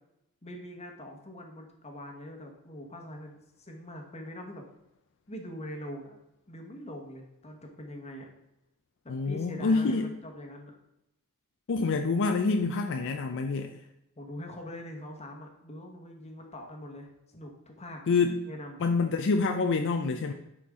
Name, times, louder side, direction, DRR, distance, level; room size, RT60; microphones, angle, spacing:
voice 1, 0.4-4.6 5.3-6.2 6.5-8.3 9.0-10.8 14.2-18.0 18.5-18.8, left 1 dB, 30° left, 2 dB, 1.2 m, -43 dB
voice 2, 9.1-10.1 11.7-13.8 18.1-18.4 18.8-20.3, left 4 dB, 55° left, 5 dB, 0.4 m, -27 dB
10.0 x 4.5 x 3.6 m, 0.88 s
head